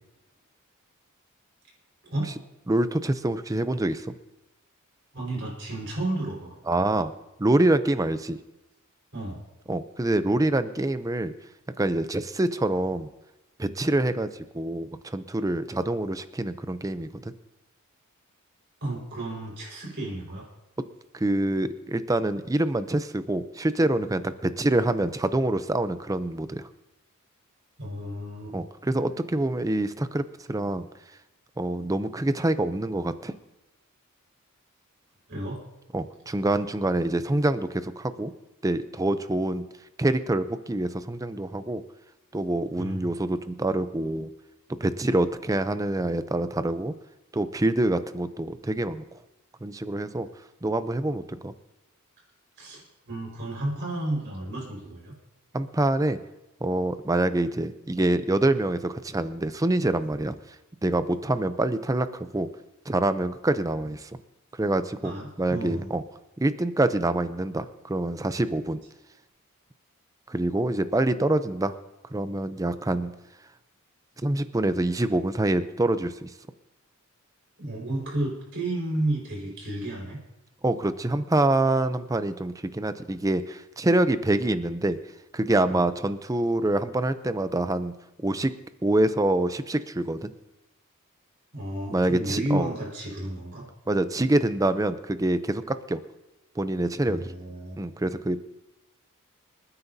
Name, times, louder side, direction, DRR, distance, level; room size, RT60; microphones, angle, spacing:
voice 1, 2.7-4.1 6.7-7.1 7.4-8.4 9.7-11.3 11.8-13.1 13.6-14.3 14.5-17.3 21.1-26.6 28.5-30.9 31.6-33.3 35.9-38.3 38.6-39.6 40.0-41.8 42.3-44.3 44.8-46.9 47.3-49.0 49.6-50.3 50.6-51.5 55.5-56.2 56.6-60.3 60.8-62.5 62.9-64.1 64.6-65.1 65.4-66.0 66.4-68.8 70.3-71.8 72.1-73.1 74.2-76.3 80.6-85.0 85.3-88.5 88.8-90.3 91.9-92.7 93.9-96.0 96.6-97.3 97.8-98.4, right 1 dB, 15° right, 12 dB, 0.5 m, -26 dB
voice 2, 5.1-6.5 9.1-9.4 18.8-20.4 27.8-28.5 35.3-35.6 42.8-43.0 52.6-55.1 65.0-65.9 77.6-80.2 85.7-85.8 91.5-93.7 97.1-97.7, right 1 dB, 55° right, -3 dB, 4.8 m, -32 dB
28.0 x 9.8 x 2.7 m, 0.96 s
head